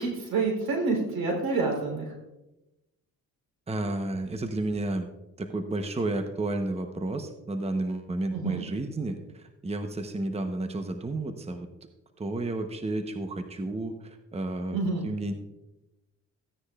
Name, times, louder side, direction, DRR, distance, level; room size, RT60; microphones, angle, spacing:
voice 1, 0.0-2.1 8.3-8.6 14.7-15.1, right 3 dB, 85° right, 0 dB, 3.8 m, -28 dB
voice 2, 3.7-5.1 5.4-11.7 12.2-15.3, right 2 dB, 20° right, 7 dB, 0.9 m, -31 dB
15.5 x 9.7 x 2.4 m, 0.98 s
cardioid pair, 75°, 34 cm